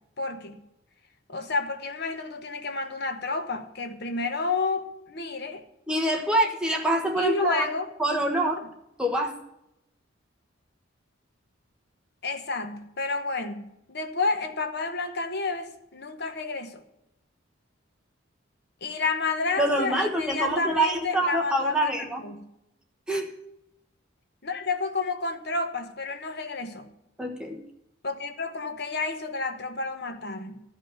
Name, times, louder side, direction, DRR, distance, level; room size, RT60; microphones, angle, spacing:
voice 1, 0.2-0.6 1.3-5.6 7.2-7.9 8.6-8.7 12.2-13.6 13.9-16.8 18.8-21.9 22.2-22.4 24.4-26.9 28.0-30.5, left 3 dB, 50° left, 7 dB, 1.0 m, -30 dB
voice 2, 5.9-7.7 8.0-8.6 9.0-9.3 19.6-22.2 23.1-23.3 27.2-27.6, right 1 dB, 5° right, 1 dB, 1.2 m, -25 dB
14.0 x 5.5 x 8.9 m, 0.84 s
head